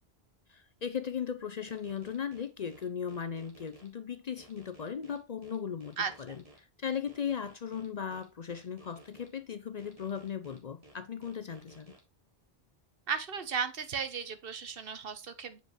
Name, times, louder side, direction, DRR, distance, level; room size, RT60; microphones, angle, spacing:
voice 1, 0.5-6.4 6.8-11.9, left 7 dB, 50° left, 0.6 m, -37 dB
sound 1, 1.7-3.9 4.4-6.6 7.1-9.3 9.8-12.0, right 1 dB, 35° right, 2.0 m, -57 dB
voice 2, 13.1-15.6, right 6 dB, 65° right, 1.1 m, -35 dB
7.7 x 5.2 x 3.1 m
omnidirectional pair, 1.0 m